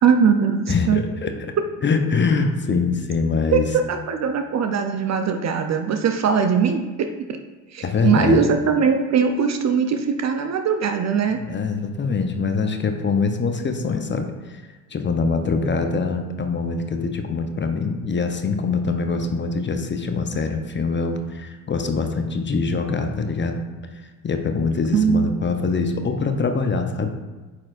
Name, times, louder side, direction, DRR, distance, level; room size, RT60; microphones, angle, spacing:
voice 1, 0.0-1.0 3.5-3.6 3.9-7.1 7.7-11.4 24.9-25.2, right 6 dB, 35° right, 6 dB, 0.6 m, -20 dB
voice 2, 0.7-1.5 1.8-3.7 7.8-8.4 11.4-14.6 14.9-23.6 23.9-27.2, left 4 dB, 25° left, 5 dB, 0.7 m, -24 dB
8.7 x 4.4 x 2.5 m, 1.2 s
hypercardioid pair, 55°, 47 cm